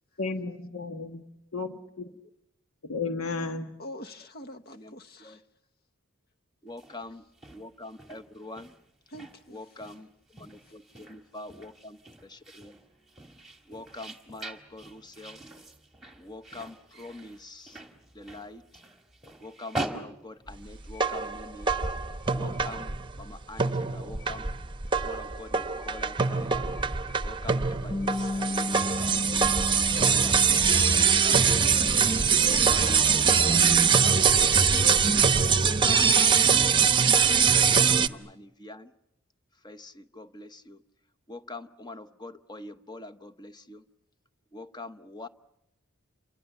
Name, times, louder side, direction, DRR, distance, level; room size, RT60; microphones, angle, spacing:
voice 1, 0.2-1.2 1.5-1.7 2.8-3.7, left 3 dB, 90° left, 1.5 m, -32 dB
voice 2, 3.8-5.4 9.1-9.6, left 1 dB, 50° left, 1.1 m, -44 dB
voice 3, 6.6-8.7 9.5-10.1 10.4-12.0 12.2-12.8 13.7-15.4 16.2-17.8 18.1-18.6 19.4-21.7 22.3-24.5 25.0-26.7 27.2-29.3 29.8-31.9 32.5-33.5 33.8-35.0 35.6-36.7 37.5-38.9 39.6-40.8 41.3-43.8 44.5-45.3, left 2 dB, 20° left, 0.9 m, -45 dB
sound 1, 6.7-21.1, right 2 dB, ahead, 2.1 m, -43 dB
sound 2, 20.9-23.2 23.6-38.1, right 6 dB, 20° right, 0.9 m, -23 dB
Bass guitar, 27.9-34.2, left 2 dB, 70° left, 4.5 m, -35 dB
29.0 x 25.5 x 7.1 m
head